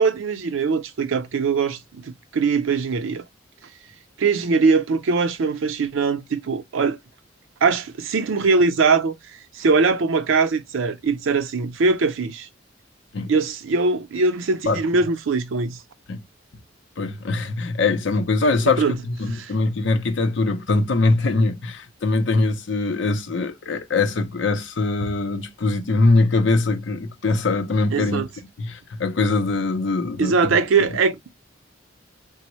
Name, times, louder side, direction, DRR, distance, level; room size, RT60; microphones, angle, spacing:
voice 1, 0.0-3.2 4.2-7.0 7.6-9.1 9.5-12.5 13.3-15.8 18.8-19.0 19.3-19.5 27.9-28.3 30.2-31.2, right 4 dB, 90° right, 0.5 m, -21 dB
voice 2, 17.0-28.2 28.6-30.9, left 3 dB, 70° left, 0.6 m, -22 dB
3.4 x 2.1 x 2.9 m
head